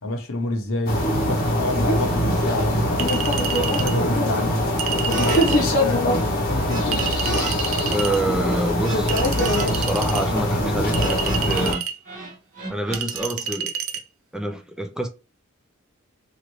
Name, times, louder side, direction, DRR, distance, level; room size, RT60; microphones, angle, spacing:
voice 1, 0.0-3.1 3.7-4.7 5.2-7.0, left 2 dB, 80° left, 0.9 m, -28 dB
sound 1, 0.9-11.7, left 1 dB, 45° left, 0.8 m, -22 dB
Chink clink, 3.0-4.0 4.8-5.6 6.9-8.2 9.1-10.2 10.9-12.0 12.9-14.0, right 8 dB, 85° right, 0.4 m, -29 dB
sound 2, 5.1-5.4 5.6-7.5 7.8-11.8 12.1-13.3, right 2 dB, 40° right, 1.1 m, -33 dB
voice 2, 7.9-9.2 9.7-11.9 12.7-13.7 14.3-15.1, right 1 dB, 5° right, 0.4 m, -27 dB
3.1 x 2.4 x 3.1 m
head